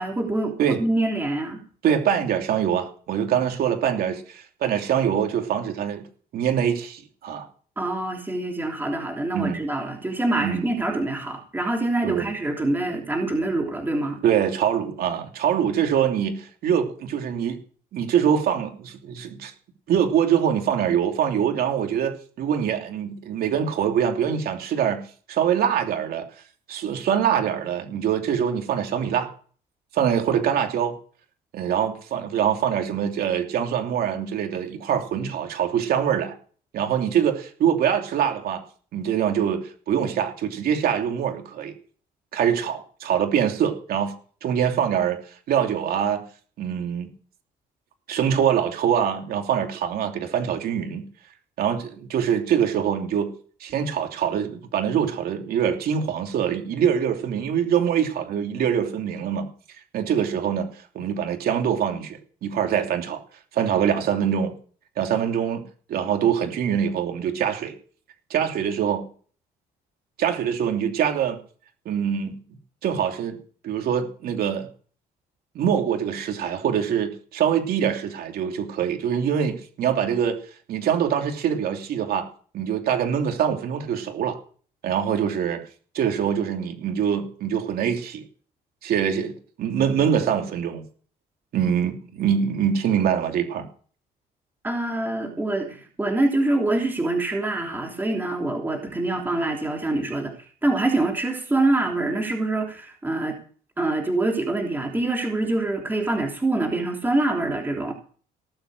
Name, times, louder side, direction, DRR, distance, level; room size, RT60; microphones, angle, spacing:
voice 1, 0.0-1.7 7.8-14.2 94.6-100.3 100.6-103.4 103.8-107.9, right 2 dB, 10° right, 1 dB, 3.3 m, -25 dB
voice 2, 1.8-6.1 6.3-7.5 9.3-9.6 10.4-10.6 12.0-12.3 14.2-17.6 17.9-19.5 19.9-25.0 25.3-26.3 26.7-29.3 29.9-30.9 31.5-36.3 36.7-38.6 38.9-41.7 42.3-44.1 44.4-45.2 45.5-46.2 46.6-47.1 48.1-51.1 51.6-53.3 53.6-59.5 59.9-60.7 60.9-63.2 63.5-64.5 65.0-65.6 65.9-67.7 68.3-69.0 70.2-71.4 71.8-72.4 72.8-73.4 73.6-74.7 75.5-80.4 80.7-82.2 82.5-84.4 84.8-85.6 85.9-88.2 88.8-89.3 89.6-90.8 91.5-93.7, right 8 dB, 65° right, 4 dB, 3.0 m, -24 dB
18.0 x 7.9 x 6.5 m, 0.42 s
cardioid pair, 110°, 17 cm